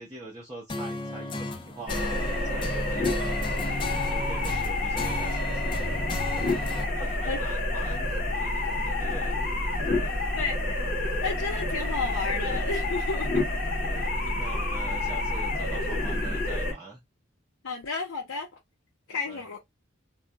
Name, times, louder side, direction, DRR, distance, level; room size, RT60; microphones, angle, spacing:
voice 1, 0.0-3.4 3.9-5.8 6.2-10.2 13.8-17.0 19.1-19.4, right 2 dB, 15° right, 0.7 m, -44 dB
sound 1, 0.7-6.8, left 2 dB, 25° left, 0.4 m, -35 dB
sound 2, 1.9-16.7, left 2 dB, 40° left, 0.8 m, -28 dB
voice 2, 7.0-7.4 10.4-10.9 11.2-13.4 17.6-18.5 19.1-19.6, left 4 dB, 75° left, 0.7 m, -32 dB
2.3 x 2.1 x 3.8 m
head